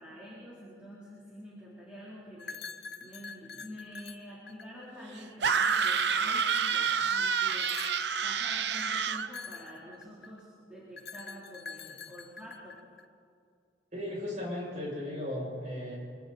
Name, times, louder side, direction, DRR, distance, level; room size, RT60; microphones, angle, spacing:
voice 1, 0.0-2.6 3.0-7.8 8.2-12.8, equal, 5° right, -9 dB, 3.6 m, -47 dB
sound 1, 2.4-5.1 5.6-6.8 7.5-8.2 9.2-10.4 11.0-13.0, left 5 dB, 60° left, 0.9 m, -45 dB
sound 2, 5.4-9.3, right 6 dB, 70° right, 0.7 m, -28 dB
voice 2, 13.9-16.0, left 1 dB, 40° right, -5 dB, 7.5 m, -36 dB
25.5 x 24.5 x 4.3 m, 2.2 s
head